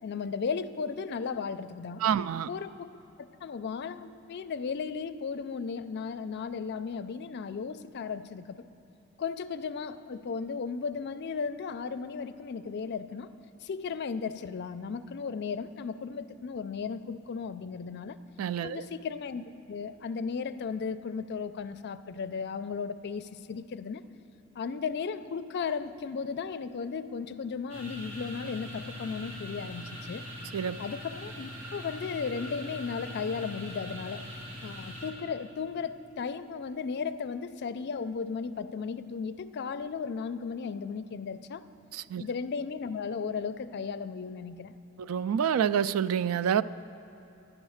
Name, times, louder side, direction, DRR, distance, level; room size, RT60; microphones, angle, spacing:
voice 1, 0.0-2.0 2.5-2.9 3.4-8.6 9.2-13.3 13.6-18.2 18.6-24.0 24.6-30.2 30.8-34.3 34.6-41.6 42.2-44.8, left 5 dB, 50° left, 11 dB, 0.4 m, -35 dB
voice 2, 2.0-2.5 18.4-18.8 30.5-30.8 41.9-42.2 45.0-46.6, right 8 dB, 85° right, 16 dB, 0.3 m, -27 dB
sound 1, 27.7-35.1, equal, 65° right, 2.5 m, -42 dB
11.5 x 9.8 x 6.4 m, 2.9 s
head